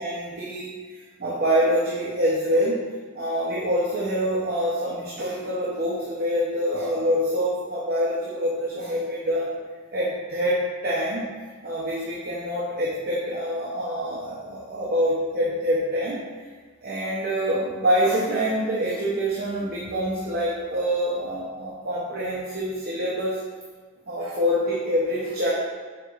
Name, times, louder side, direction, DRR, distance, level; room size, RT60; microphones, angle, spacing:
voice 1, 0.0-2.8 3.1-9.5 9.9-11.3 11.6-16.2 16.8-23.4 24.1-25.5, equal, 45° right, -6 dB, 0.6 m, -26 dB
4.7 x 3.9 x 2.4 m, 1.5 s
head